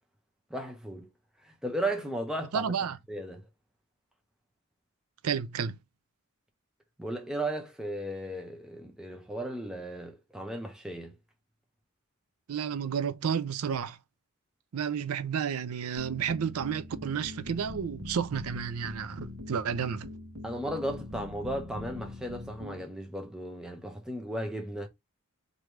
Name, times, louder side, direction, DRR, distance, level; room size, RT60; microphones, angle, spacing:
voice 1, 0.5-1.1 1.4-2.7 3.1-3.4 7.0-11.2 20.4-24.9, right 1 dB, 5° right, 0.6 m, -35 dB
voice 2, 2.5-3.0 5.2-5.8 12.5-14.0 14.7-20.1, right 7 dB, 85° right, 0.4 m, -31 dB
sound 1, 16.0-22.8, left 1 dB, 65° right, 1.0 m, -42 dB
3.3 x 2.7 x 4.4 m
head